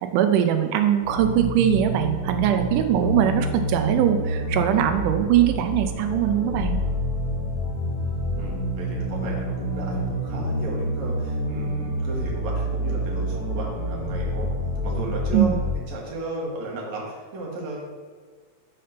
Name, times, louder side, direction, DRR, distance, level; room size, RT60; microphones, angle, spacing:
voice 1, 0.0-6.8 15.3-15.6, right 10 dB, 85° right, 7 dB, 2.1 m, -21 dB
sound 1, 1.0-15.7, equal, 45° right, 1.2 m, -28 dB
voice 2, 8.3-14.5 14.8-17.8, right 2 dB, 65° right, -3 dB, 2.4 m, -34 dB
6.6 x 3.4 x 5.7 m, 1.5 s
omnidirectional pair, 3.6 m